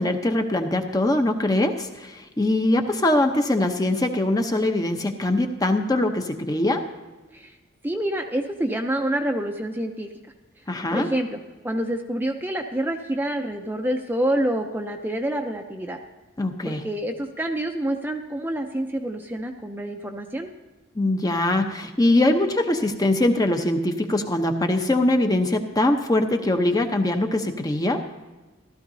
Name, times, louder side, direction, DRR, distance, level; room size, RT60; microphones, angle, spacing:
voice 1, 0.0-6.9 10.7-11.1 16.4-16.8 21.0-28.0, left 1 dB, 20° left, 5 dB, 0.8 m, -22 dB
voice 2, 7.8-10.1 10.9-16.0 16.6-20.5, right 1 dB, 10° right, 3 dB, 0.6 m, -27 dB
15.0 x 13.0 x 2.7 m, 1.2 s
head